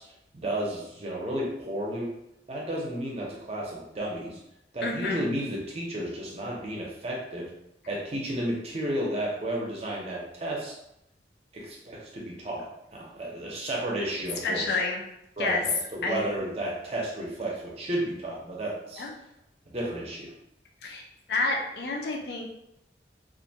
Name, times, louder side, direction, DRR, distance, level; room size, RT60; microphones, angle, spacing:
voice 1, 0.0-2.1 2.5-4.4 4.7-7.5 7.9-10.8 11.5-14.8 15.4-19.1 19.7-20.4, right 1 dB, 35° right, -2 dB, 0.6 m, -32 dB
voice 2, 4.8-5.2 14.4-15.0 15.4-15.6 16.0-16.2 19.0-19.1 20.8-22.5, left 3 dB, 70° left, 0 dB, 0.4 m, -29 dB
2.4 x 2.2 x 2.7 m, 0.82 s
head